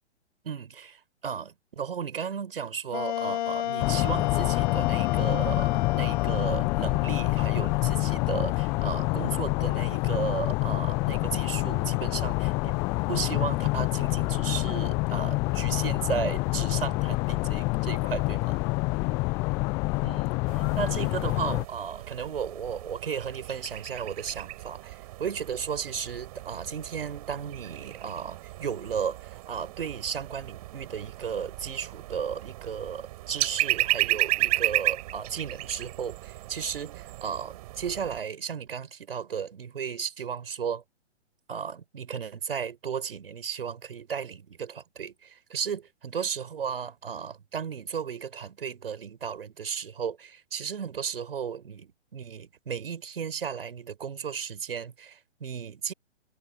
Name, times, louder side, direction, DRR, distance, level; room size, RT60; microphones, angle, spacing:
voice 1, 0.4-18.6 20.0-40.8 41.5-55.9, right 7 dB, 55° right, 6.6 m, -35 dB
Wind instrument woodwind instrument, 2.9-10.3, left 12 dB, 40° left, 4.4 m, -34 dB
sound 1, 3.8-21.6, left 26 dB, 10° left, 0.5 m, -27 dB
sound 2, 20.5-38.2, right 17 dB, 35° right, 5.6 m, -34 dB
figure-of-eight pair, 125°, 34 cm